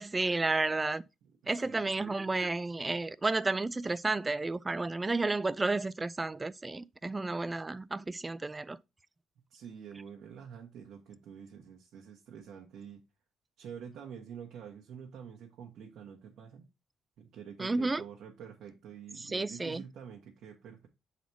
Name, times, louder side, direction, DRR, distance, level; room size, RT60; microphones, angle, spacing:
voice 1, 0.0-1.0 1.5-8.8 17.6-18.0 19.3-19.8, right 3 dB, 20° right, 0.4 m, -32 dB
voice 2, 1.2-2.1 9.5-13.0 13.6-16.6 17.2-20.9, right 7 dB, 75° right, 1.2 m, -47 dB
7.0 x 4.1 x 4.6 m
cardioid pair, 90°, 0 cm